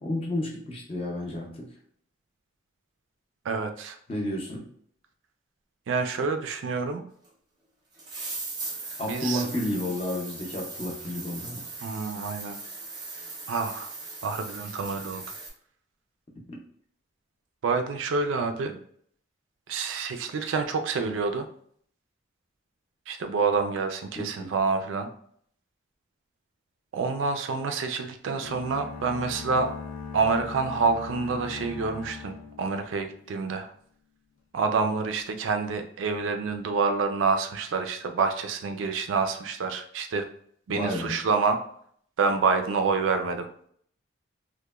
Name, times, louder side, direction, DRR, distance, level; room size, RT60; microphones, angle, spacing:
voice 1, 0.0-1.7 4.1-4.7 9.0-11.6 16.5-16.6 24.4-24.5 40.7-41.2, left 1 dB, 30° left, 0 dB, 0.5 m, -31 dB
voice 2, 3.4-4.0 5.9-7.0 9.0-9.4 11.8-12.6 13.5-13.9 14.2-15.2 17.6-18.8 19.7-21.5 23.1-25.1 26.9-29.7 30.1-33.7 34.5-40.3 40.7-41.6 42.2-43.5, right 4 dB, 80° right, 7 dB, 0.3 m, -27 dB
sound 1, 7.2-7.3 8.0-15.5, right 3 dB, 20° right, 0.5 m, -39 dB
sound 2, 28.3-33.3, left 5 dB, 80° left, 0.5 m, -40 dB
2.9 x 2.1 x 2.2 m, 0.62 s
head